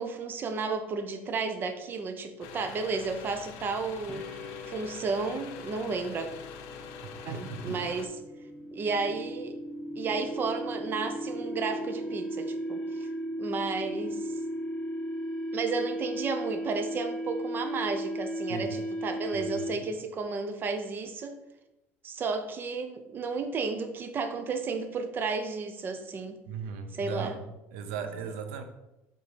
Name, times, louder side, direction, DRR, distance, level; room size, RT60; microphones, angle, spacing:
voice 1, 0.0-4.3 4.7-6.3 7.2-8.2 8.7-9.6 10.0-13.1 13.4-14.3 15.5-21.3 22.0-26.4 26.9-27.3 28.2-28.3, right 4 dB, 35° right, 7 dB, 0.7 m, -33 dB
sound 1, 2.4-8.1, left 7 dB, 80° left, 0.7 m, -45 dB
sound 2, 4.1-20.0, equal, 20° left, 1.2 m, -36 dB
voice 2, 7.3-7.8 18.5-18.7 19.3-19.5 26.5-27.4 27.7-28.6, right 6 dB, 90° right, 7 dB, 0.8 m, -37 dB
5.3 x 3.8 x 5.1 m, 0.92 s
cardioid pair, 135°, 6 cm